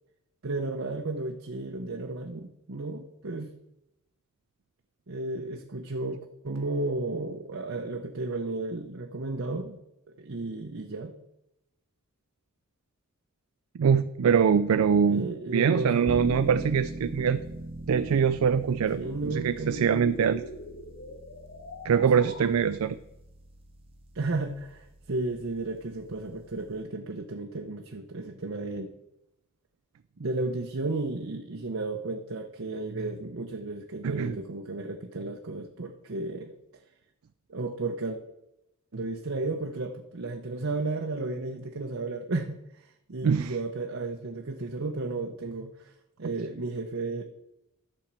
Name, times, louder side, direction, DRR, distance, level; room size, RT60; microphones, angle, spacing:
voice 1, 0.4-3.5 5.1-9.8 10.1-11.1 15.1-16.2 18.9-20.1 22.1-22.4 24.1-28.9 30.2-36.5 37.5-38.2 38.9-45.9 46.2-47.2, right 2 dB, 65° right, 3 dB, 0.8 m, -33 dB
voice 2, 13.8-15.3 15.5-17.4 17.9-19.0 19.3-20.4 21.8-23.0 34.0-34.4 43.2-43.5, right 7 dB, 85° right, 11 dB, 0.4 m, -23 dB
Bass - piano - final, 16.1-26.8, right 1 dB, 25° right, 0.9 m, -42 dB
sound 1, 17.5-22.5, left 2 dB, 50° left, 1.1 m, -43 dB
11.5 x 4.4 x 7.4 m, 0.87 s
head